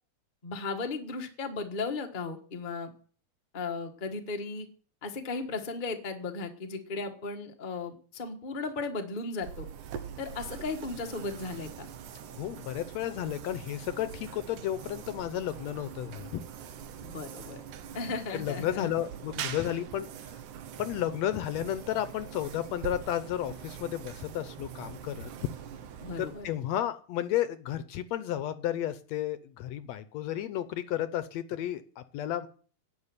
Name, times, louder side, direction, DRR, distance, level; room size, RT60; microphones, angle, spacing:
voice 1, 0.4-2.9 3.5-4.7 5.0-9.6 10.2-11.9 17.0-17.6 17.9-18.9 26.0-26.5, left 3 dB, 30° left, 4 dB, 0.9 m, -36 dB
sound 1, 9.4-26.8, right 9 dB, 85° right, 2.6 m, -43 dB
voice 2, 12.3-16.4 18.3-20.1 20.8-25.3 26.2-32.5, left 12 dB, 70° left, 13 dB, 1.8 m, -32 dB
11.0 x 7.3 x 9.8 m, 0.42 s
omnidirectional pair, 3.4 m